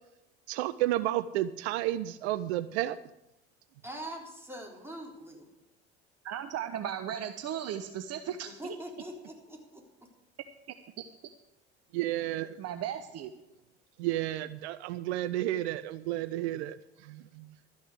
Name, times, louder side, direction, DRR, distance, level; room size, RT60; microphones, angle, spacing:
voice 1, 0.5-3.0 11.9-12.6 14.0-16.8 17.0-17.5, right 14 dB, 75° right, 13 dB, 0.5 m, -31 dB
voice 2, 3.8-5.5 8.4-9.8, equal, 5° right, -1 dB, 3.7 m, -43 dB
voice 3, 6.2-8.8 12.6-13.3, right 9 dB, 50° right, 8 dB, 0.8 m, -36 dB
12.5 x 6.4 x 7.9 m, 0.90 s
hypercardioid pair, 70°, 33 cm